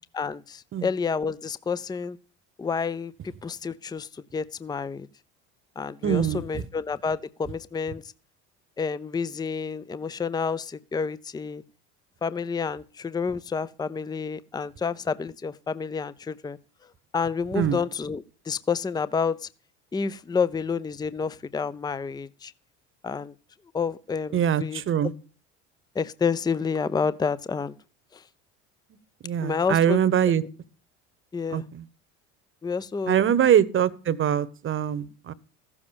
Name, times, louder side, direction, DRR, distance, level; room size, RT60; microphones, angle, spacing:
voice 1, 0.1-2.2 2.6-3.1 3.4-5.1 5.8-8.0 8.8-11.6 12.2-16.6 17.1-19.5 19.9-22.5 23.0-23.3 23.7-24.8 26.0-27.8 28.1-28.2 29.4-30.0 31.3-31.6 32.6-33.2, left 5 dB, 10° left, 0.6 m, -29 dB
voice 2, 6.0-6.4 17.5-17.8 24.3-25.1 29.2-30.4 31.5-31.8 33.1-35.3, right 9 dB, 40° right, 1.1 m, -23 dB
14.5 x 7.3 x 6.9 m
supercardioid pair, 85°, 32 cm